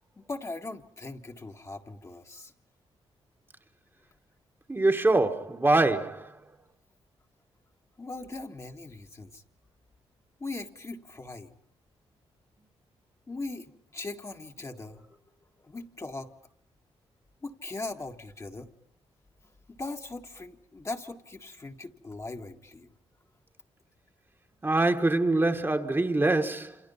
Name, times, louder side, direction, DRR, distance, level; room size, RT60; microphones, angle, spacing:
voice 1, 0.2-2.5 8.0-9.4 10.4-11.5 13.3-13.7 13.9-15.1 15.6-16.3 17.4-18.7 19.7-22.9, left 2 dB, 30° left, 1.7 m, -39 dB
voice 2, 4.7-6.4 24.6-26.8, right 2 dB, 20° right, 1.6 m, -24 dB
28.5 x 27.0 x 5.7 m
cardioid pair, 85°, 11 cm